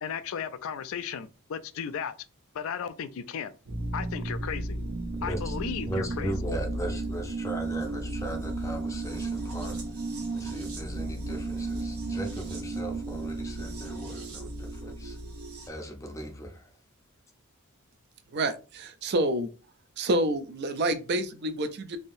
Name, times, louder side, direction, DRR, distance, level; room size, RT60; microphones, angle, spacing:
voice 1, 0.0-2.2 2.5-3.5 3.9-4.8 5.2-6.3, left 7 dB, 65° left, 0.3 m, -35 dB
sound 1, 3.7-15.7, right 2 dB, 75° right, 1.0 m, -34 dB
voice 2, 5.1-5.6 5.9-10.0 10.3-15.2 15.6-16.7, right 1 dB, 15° left, 0.5 m, -38 dB
voice 3, 18.3-19.5 20.0-22.0, right 1 dB, 50° right, 0.4 m, -28 dB
3.4 x 2.7 x 2.6 m
head